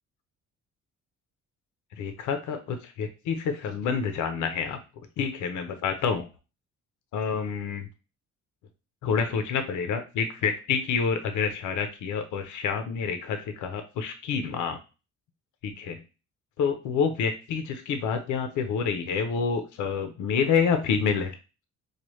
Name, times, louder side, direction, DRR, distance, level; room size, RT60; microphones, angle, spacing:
voice 1, 2.0-4.8 5.2-6.3 7.1-7.9 9.0-14.8 15.6-16.0 16.6-21.4, left 6 dB, 75° left, 8 dB, 0.7 m, -28 dB
4.8 x 2.3 x 3.0 m, 0.31 s
cardioid pair, 90°, 30 cm